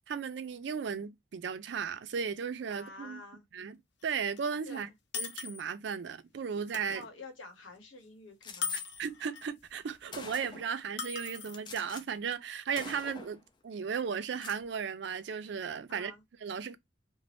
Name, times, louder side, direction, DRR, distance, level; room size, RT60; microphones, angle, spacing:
voice 1, 0.1-3.2 3.5-4.9 5.2-7.0 9.0-16.1 16.4-16.8, right 6 dB, 65° right, 0.4 m, -36 dB
voice 2, 2.7-3.4 4.7-4.9 6.9-8.8 15.9-16.2, left 2 dB, 85° left, 0.9 m, -49 dB
sound 1, 4.0-4.1 4.4-4.5 5.1-5.6 6.7-7.1 8.6-9.5 11.0-11.6, left 6 dB, 65° left, 0.6 m, -38 dB
Gunshot gunfire, 8.4-8.8 9.7-9.8 10.1-10.8 11.5-12.0 12.3-12.5 12.8-13.4 14.2-14.6, left 4 dB, 25° left, 0.3 m, -46 dB
2.6 x 2.1 x 3.3 m
head